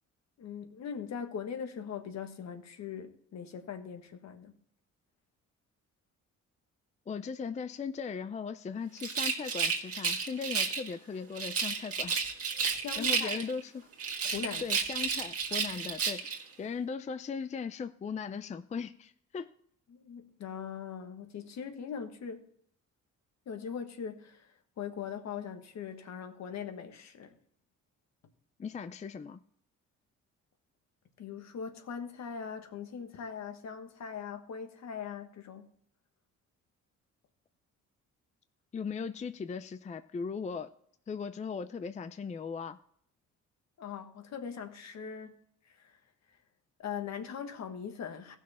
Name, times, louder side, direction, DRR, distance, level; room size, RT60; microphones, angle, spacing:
voice 1, 0.4-4.5 12.7-13.4 14.2-14.6 19.9-22.4 23.5-27.3 31.2-35.7 43.8-45.4 45.8-46.0 46.8-48.4, left 7 dB, 60° left, 1.4 m, -41 dB
voice 2, 7.1-12.2 12.6-13.9 14.6-19.5 28.6-29.4 38.7-40.7 41.1-42.8, left 5 dB, 25° left, 0.4 m, -38 dB
Rattle, 9.0-10.9 11.4-13.6 14.0-16.4, right 5 dB, 50° right, 1.9 m, -32 dB
15.5 x 6.3 x 4.2 m
cardioid pair, 90°, 30 cm